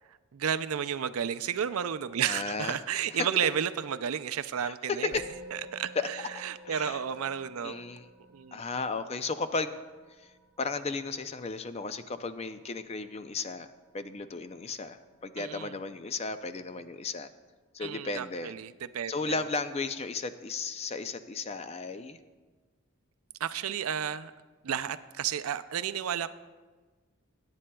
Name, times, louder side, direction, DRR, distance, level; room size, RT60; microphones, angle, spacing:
voice 1, 0.3-5.2 5.5-7.9 8.3-8.6 15.4-15.7 17.8-19.4 23.4-24.3 24.6-26.3, right 8 dB, 85° right, 13 dB, 0.4 m, -32 dB
voice 2, 2.3-2.8 4.6-5.2 6.0-6.1 6.6-7.0 7.6-8.1 8.5-9.8 10.2-10.3 10.6-13.7 13.9-17.3 17.7-18.5 19.1-22.2, left 4 dB, 30° left, 11 dB, 0.4 m, -34 dB
Musical instrument, 5.1-14.6, left 1 dB, 5° left, 2.4 m, -52 dB
21.5 x 9.7 x 2.3 m, 1.3 s
head